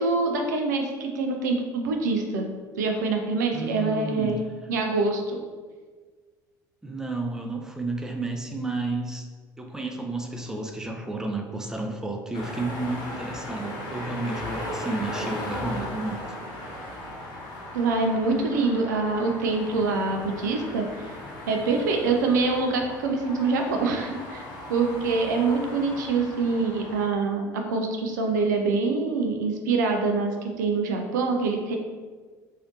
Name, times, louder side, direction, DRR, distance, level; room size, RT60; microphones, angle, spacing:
voice 1, 0.0-2.5 2.8-4.4 4.7-5.4 17.7-21.1 21.5-24.4 24.7-31.8, right 3 dB, 75° right, 3 dB, 0.4 m, -25 dB
voice 2, 3.5-4.4 6.8-9.3 9.6-16.4, right 2 dB, 5° right, 3 dB, 0.4 m, -32 dB
sound 1, 12.3-27.1, left 1 dB, 50° left, 0.8 m, -37 dB
3.2 x 2.6 x 2.7 m, 1.5 s
figure-of-eight pair, 60°, 10 cm